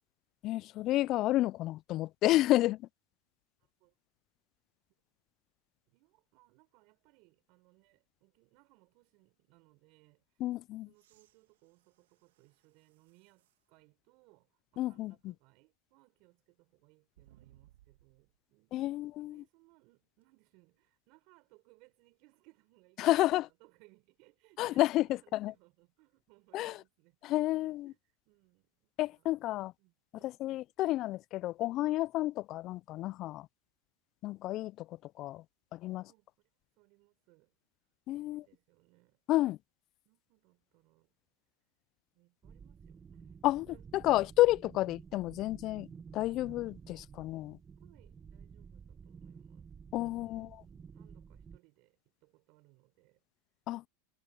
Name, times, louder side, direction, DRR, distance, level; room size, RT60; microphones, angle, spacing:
voice 1, 0.4-2.9 10.4-10.9 14.8-15.3 18.7-19.4 23.0-23.5 24.6-25.5 26.5-26.8 27.2-27.9 29.0-29.7 30.2-33.5 34.2-35.4 35.7-36.0 38.1-38.4 39.3-39.6 43.4-43.6 44.0-45.9 46.1-47.6 49.9-50.5 53.7-53.8, left 16 dB, 40° left, 0.3 m, -30 dB
voice 2, 3.6-3.9 5.9-10.5 10.8-18.8 19.3-29.5 29.8-30.4 35.9-36.3 36.8-37.5 38.1-39.2 40.0-41.1 42.1-43.9 47.8-53.2, right 26 dB, 55° right, 6.7 m, -67 dB
sound 1, 10.9-13.7 14.3-14.4 17.1-18.4 20.2-20.3, right 13 dB, 80° right, 2.3 m, -66 dB
sound 2, 42.4-51.6, right 6 dB, 20° right, 0.9 m, -52 dB
supercardioid pair, 125°, 0 cm